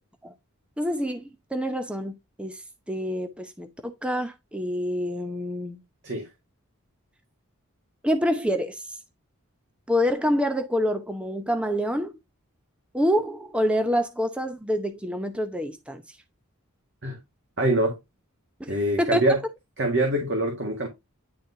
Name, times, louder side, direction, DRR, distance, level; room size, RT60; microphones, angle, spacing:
voice 1, 0.8-1.2 1.5-2.6 2.9-5.8 8.0-8.8 9.9-12.2 12.9-16.0 18.6-19.2, equal, 5° right, 0.7 m, -27 dB
voice 2, 17.6-18.0 18.7-19.4 19.8-20.9, right 1 dB, 55° right, 1.8 m, -24 dB
10.5 x 4.1 x 2.8 m
head